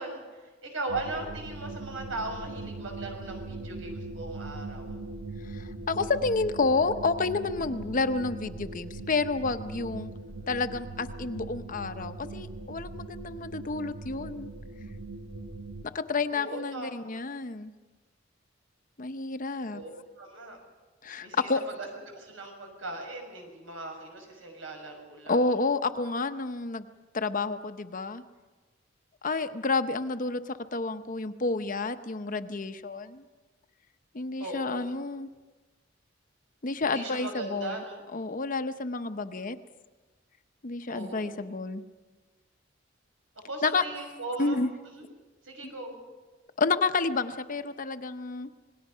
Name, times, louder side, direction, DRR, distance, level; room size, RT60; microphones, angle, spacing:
voice 1, 0.0-4.9 16.3-17.2 19.7-19.9 20.2-20.6 21.2-21.5 21.8-25.4 34.4-34.9 36.8-38.0 40.9-41.4 43.5-44.6 44.9-45.1 45.4-46.0, right 2 dB, 85° right, 3 dB, 5.9 m, -38 dB
sound 1, 0.9-15.8, right 2 dB, 65° right, 1.5 m, -40 dB
voice 2, 5.4-10.1 10.5-14.5 15.8-17.7 19.0-19.8 21.0-21.6 25.3-26.8 27.1-28.2 29.2-33.2 34.1-35.3 36.6-37.8 38.1-39.6 40.6-41.8 43.6-43.8 44.4-44.7 45.6-45.7 46.6-48.5, left 3 dB, 45° left, 10 dB, 0.8 m, -30 dB
27.0 x 19.5 x 5.6 m, 1.3 s
head